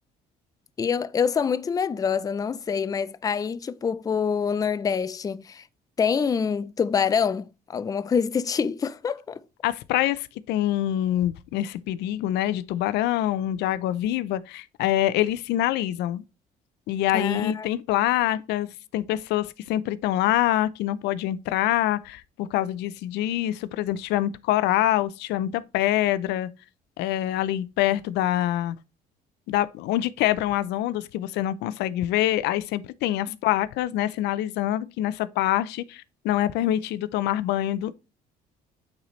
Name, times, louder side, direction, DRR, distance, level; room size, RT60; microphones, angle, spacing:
voice 1, 0.8-5.6 6.0-9.4 17.1-17.7, left 6 dB, 20° left, 0.4 m, -26 dB
voice 2, 9.6-16.2 16.9-18.7 18.9-26.5 27.0-28.8 29.5-37.9, left 13 dB, 85° left, 0.4 m, -25 dB
8.7 x 4.1 x 3.1 m
cardioid pair, 110°, 17 cm